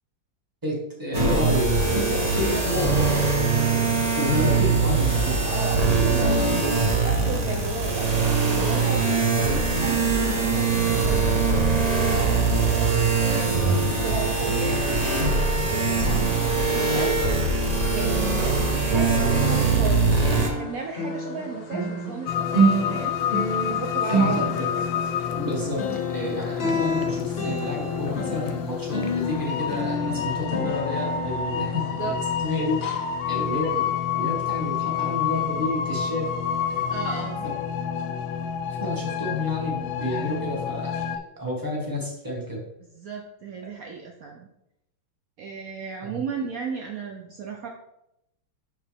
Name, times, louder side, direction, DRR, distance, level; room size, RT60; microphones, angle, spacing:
voice 1, 0.6-3.1 4.2-5.5 16.0-16.1 24.1-24.7 25.3-25.8 26.1-32.8 33.3-36.3 36.7-36.8 37.4-37.5 38.8-41.1 41.4-42.6 46.0-46.2, left 1 dB, 10° right, -3 dB, 1.6 m, -30 dB
sound 1, 1.1-20.5, right 4 dB, 40° right, 0.5 m, -22 dB
voice 2, 5.2-17.2 17.7-23.2 23.6-24.5 24.8-24.9 31.7-32.2 36.9-37.5 43.0-44.5 45.4-47.7, right 4 dB, 70° right, 2 dB, 0.8 m, -35 dB
sound 2, 17.0-19.1 19.3-32.4 32.8-33.0 33.5-33.6, right 1 dB, 45° left, 0.8 m, -29 dB
sound 3, 22.3-41.2, left 8 dB, 75° left, 1.2 m, -28 dB
6.5 x 5.9 x 3.5 m, 0.84 s
omnidirectional pair, 2.4 m